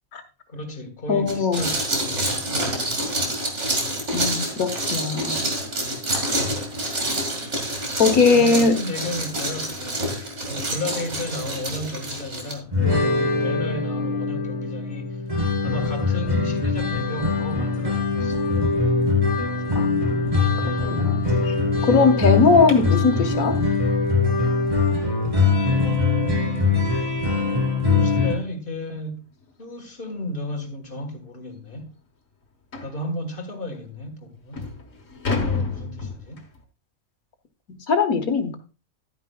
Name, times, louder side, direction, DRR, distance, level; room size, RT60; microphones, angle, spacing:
voice 1, 0.5-2.3 2.5-3.0 5.8-6.2 8.3-10.0 10.5-19.1 25.7-27.0 28.0-29.3 29.6-32.0 32.8-34.7 35.3-36.5, left 1 dB, 40° left, 1.7 m, -34 dB
voice 2, 1.1-1.7 4.1-5.4 8.0-8.8 19.7-20.5 20.9-21.4 21.8-23.6 35.4-35.7 37.7-38.6, left 4 dB, 80° left, 1.8 m, -20 dB
sound 1, 1.3-12.5, right 1 dB, 55° right, 2.5 m, -27 dB
sound 2, 12.7-28.3, left 4 dB, 25° right, 2.5 m, -22 dB
sound 3, 20.0-23.1 25.9-26.0 26.5-26.7 27.0-27.1 27.6-27.7 28.8-29.0 29.4-29.5 30.2-30.3 30.6-30.7 31.2-31.3 32.7-33.0 33.8-33.9 34.3-36.6, left 4 dB, 65° left, 1.8 m, -32 dB
12.0 x 9.5 x 2.3 m
omnidirectional pair, 1.5 m